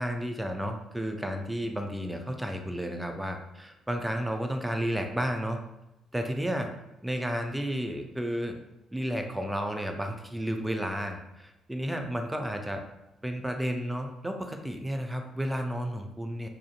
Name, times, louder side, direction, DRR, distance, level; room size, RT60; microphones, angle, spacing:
voice 1, 0.0-5.6 6.1-6.7 7.0-8.6 8.9-12.8 13.2-16.5, equal, 10° right, 4 dB, 0.4 m, -32 dB
2.5 x 2.4 x 2.4 m, 0.89 s
hypercardioid pair, 45°, 0 cm